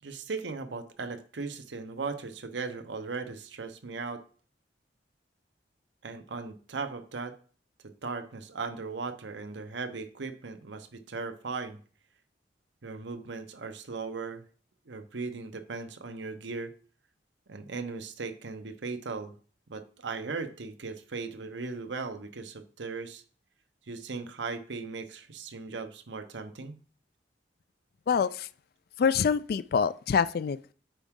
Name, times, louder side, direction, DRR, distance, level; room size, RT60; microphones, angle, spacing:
voice 1, 0.0-4.2 6.0-7.3 7.8-11.8 12.8-14.4 14.9-16.7 17.5-19.3 19.7-23.2 23.9-26.8, right 4 dB, 80° right, 0.8 m, -38 dB
voice 2, 28.1-28.5 29.0-30.7, left 6 dB, 55° left, 0.3 m, -26 dB
9.0 x 4.6 x 3.7 m
head